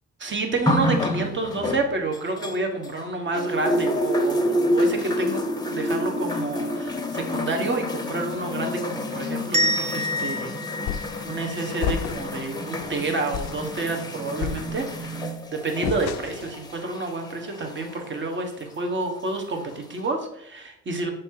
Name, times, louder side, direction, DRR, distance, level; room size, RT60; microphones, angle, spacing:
voice 1, 0.2-5.4 5.7-10.6 10.9-21.1, right 3 dB, 40° right, 3 dB, 1.3 m, -29 dB
sound 1, 0.7-3.0 3.3-18.1 19.0-19.1, left 1 dB, 15° left, 0.8 m, -28 dB
sound 2, 9.5-12.3, left 1 dB, 20° right, 0.8 m, -28 dB
sound 3, 10.9-11.2 11.8-12.4 12.8-12.9 13.3-13.7 14.4-15.1 15.8-16.5, left 10 dB, 65° left, 0.5 m, -30 dB
7.5 x 3.2 x 4.6 m, 0.77 s
cardioid pair, 90°, 30 cm